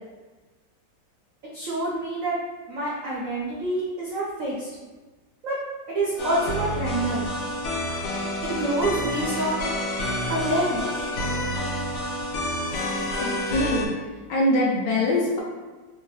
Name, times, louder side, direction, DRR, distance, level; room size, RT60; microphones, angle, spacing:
voice 1, 1.5-2.4 2.7-4.7 5.4-5.6 5.9-7.3 8.4-9.6 10.3-10.9, right 1 dB, 85° right, -6 dB, 0.7 m, -27 dB
sound 1, 6.2-13.9, left 1 dB, 85° left, 1.5 m, -29 dB
voice 2, 13.2-13.9 14.3-15.4, left 1 dB, 70° left, -4 dB, 1.1 m, -24 dB
3.6 x 2.3 x 3.1 m, 1.3 s
omnidirectional pair, 2.3 m